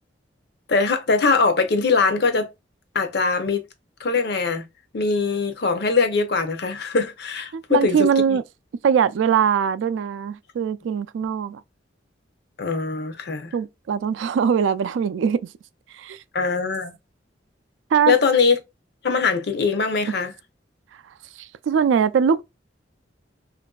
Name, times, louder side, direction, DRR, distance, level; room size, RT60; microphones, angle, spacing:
voice 1, 0.7-2.5 2.9-3.6 4.0-4.6 4.9-8.0 12.6-13.5 16.3-16.9 18.1-18.6 19.0-20.3, left 4 dB, 60° left, 0.6 m, -21 dB
voice 2, 7.5-8.4 8.8-11.6 13.5-15.5 15.9-16.2 17.9-18.2 20.9-21.0 21.4-22.4, right 7 dB, 85° right, 0.3 m, -21 dB
2.9 x 2.5 x 2.3 m
head